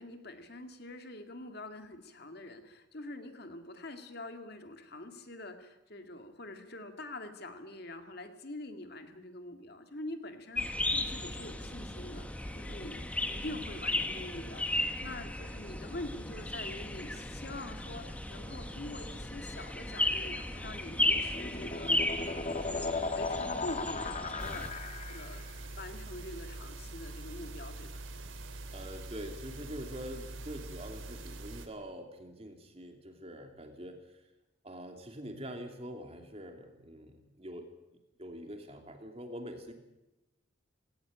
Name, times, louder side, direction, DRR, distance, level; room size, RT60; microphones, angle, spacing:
voice 1, 0.0-27.9, left 1 dB, 55° left, 7 dB, 2.2 m, -45 dB
sound 1, 10.6-24.7, left 1 dB, 5° left, 1.4 m, -35 dB
sound 2, 20.7-25.5, left 3 dB, 35° left, 1.6 m, -37 dB
sound 3, 24.4-31.7, right 2 dB, 80° right, 2.7 m, -44 dB
voice 2, 28.7-34.0 34.6-37.7 38.2-39.7, equal, 30° right, 5 dB, 2.7 m, -44 dB
19.0 x 17.5 x 8.9 m, 0.96 s
head